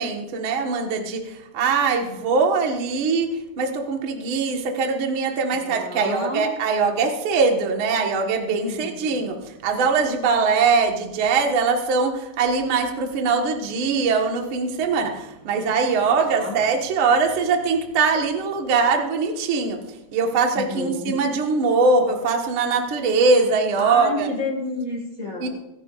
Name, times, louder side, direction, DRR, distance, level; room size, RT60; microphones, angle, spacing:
voice 1, 0.0-19.8 20.1-24.3 25.4-25.5, right 4 dB, 55° right, 2 dB, 1.4 m, -22 dB
voice 2, 5.5-6.4 8.7-9.2 15.9-16.6 20.5-21.1 23.8-25.5, left 2 dB, 35° left, 0 dB, 1.3 m, -31 dB
24.0 x 10.0 x 2.5 m, 0.89 s
omnidirectional pair, 4.5 m